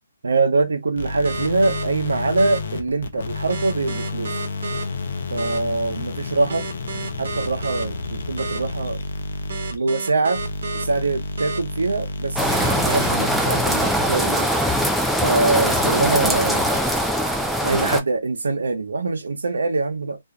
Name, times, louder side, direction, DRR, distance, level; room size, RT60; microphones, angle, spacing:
voice 1, 0.2-4.4 5.3-6.7 7.2-9.0 9.7-10.4 10.7-14.5 15.2-16.7 17.6-20.2, right 3 dB, 90° right, 0.7 m, -23 dB
sound 1, 1.0-14.4 15.6-17.1, left 3 dB, 65° left, 0.6 m, -31 dB
sound 2, 1.2-1.8 2.4-2.6 3.5-4.8 5.4-5.6 6.5-7.8 8.4-8.6 9.5-10.8 11.4-11.6 12.5-13.1, right 4 dB, 60° right, 0.9 m, -31 dB
sound 3, 12.4-18.0, equal, ahead, 0.3 m, -21 dB
2.6 x 2.3 x 2.2 m
hypercardioid pair, 155°, 0 cm